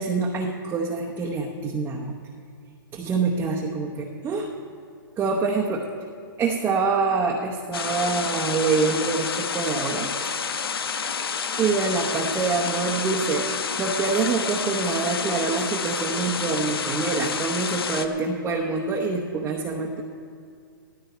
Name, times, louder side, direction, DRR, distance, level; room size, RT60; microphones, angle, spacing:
voice 1, 0.0-2.1 2.9-4.5 5.2-5.8 6.4-10.6 11.6-20.0, right 4 dB, 15° right, -1 dB, 0.9 m, -26 dB
sound 1, 7.7-18.1, left 6 dB, 85° left, 1.0 m, -29 dB
15.5 x 13.0 x 4.5 m, 2.2 s
hypercardioid pair, 150°, 12 cm